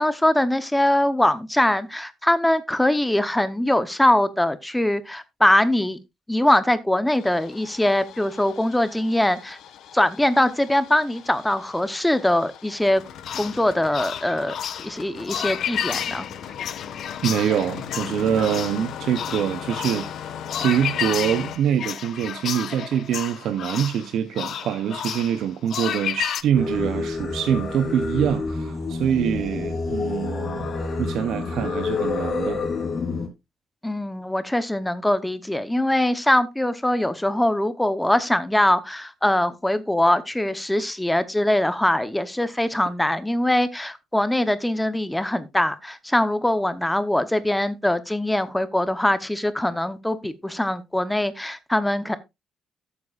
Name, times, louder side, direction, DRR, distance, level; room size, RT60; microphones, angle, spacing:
voice 1, 0.0-6.0 6.3-9.6 9.9-13.0 13.4-14.5 14.8-16.3 33.8-52.2, left 1 dB, 5° left, 0.8 m, -22 dB
Engine starting, 7.1-21.6, left 9 dB, 70° left, 1.4 m, -39 dB
sound 1, 13.2-26.4, left 9 dB, 55° left, 0.7 m, -31 dB
voice 2, 17.2-20.1 20.6-30.7 31.0-32.6, right 9 dB, 70° right, 0.7 m, -24 dB
Singing, 26.5-33.3, left 4 dB, 35° left, 2.7 m, -28 dB
14.0 x 8.3 x 2.4 m
cardioid pair, 150°, 0 cm